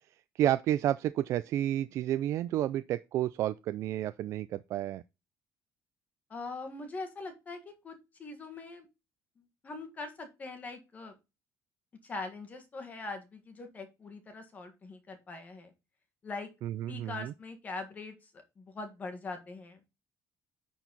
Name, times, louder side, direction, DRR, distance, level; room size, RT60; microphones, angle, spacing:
voice 1, 0.4-5.0 16.6-17.3, right 12 dB, 50° right, 0.3 m, -30 dB
voice 2, 6.3-7.6 7.8-8.9 9.4-11.1 12.0-15.7 16.2-16.5 16.9-18.3 18.6-19.8, left 3 dB, 25° left, 1.8 m, -42 dB
10.0 x 4.5 x 4.0 m
cardioid pair, 170°, 6 cm